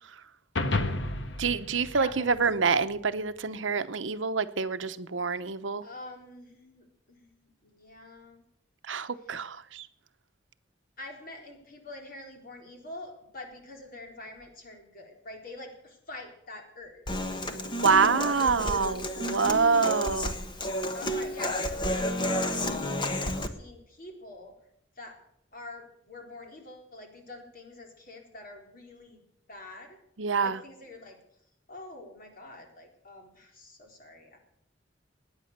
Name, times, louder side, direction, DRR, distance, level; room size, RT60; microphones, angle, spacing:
sound 1, 0.6-3.0, left 2 dB, 70° left, 1.4 m, -32 dB
voice 1, 1.4-5.8 8.9-9.9 17.8-20.4 30.2-30.6, right 5 dB, 85° right, 1.0 m, -26 dB
voice 2, 1.9-2.4 5.8-8.4 9.2-9.5 11.0-17.9 18.2-19.1 20.9-24.5 25.0-25.2 25.5-29.2 29.5-30.0 30.4-31.2 31.7-34.4, left 2 dB, 50° left, 4.0 m, -46 dB
Human voice / Acoustic guitar, 17.1-23.5, left 1 dB, 25° left, 1.4 m, -31 dB
21.0 x 10.0 x 6.7 m
head